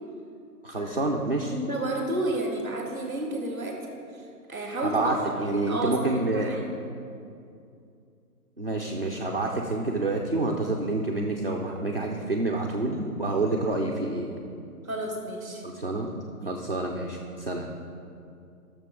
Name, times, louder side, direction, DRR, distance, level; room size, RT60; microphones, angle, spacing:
voice 1, 0.6-1.5 4.8-6.5 8.6-14.3 15.6-16.1 16.4-17.7, right 2 dB, 40° right, -2 dB, 0.5 m, -28 dB
voice 2, 1.5-3.8 4.1-6.7 14.8-15.6 16.4-16.6, right 1 dB, 10° right, 1 dB, 1.0 m, -32 dB
12.5 x 6.8 x 3.6 m, 2.5 s
hypercardioid pair, 175°, 46 cm